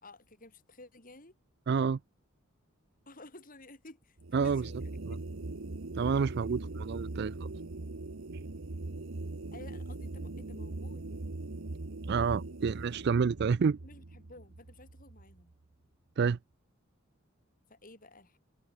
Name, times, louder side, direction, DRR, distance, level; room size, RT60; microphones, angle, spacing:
voice 1, 0.0-1.4 3.1-5.2 6.5-6.7 9.5-11.1 13.8-15.6 17.7-18.4, left 2 dB, 40° left, 6.2 m, -53 dB
voice 2, 1.7-2.0 4.3-4.6 5.1-5.2 5.9-7.5 12.1-13.8 16.2-16.4, right 5 dB, 55° right, 0.4 m, -29 dB
sound 1, 4.2-15.5, right 2 dB, 75° right, 1.1 m, -41 dB
head